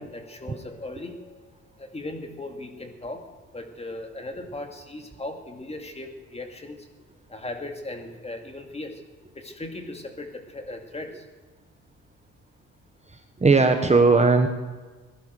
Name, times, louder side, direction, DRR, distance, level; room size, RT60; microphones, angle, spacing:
voice 1, 0.0-1.5 1.8-3.2 3.5-6.8 7.3-9.0 9.3-11.2, left 2 dB, 20° left, 4 dB, 2.5 m, -37 dB
voice 2, 13.1-14.5, right 3 dB, 20° right, 6 dB, 1.4 m, -19 dB
16.5 x 12.0 x 6.6 m, 1.3 s
cardioid pair, 90°, 30 cm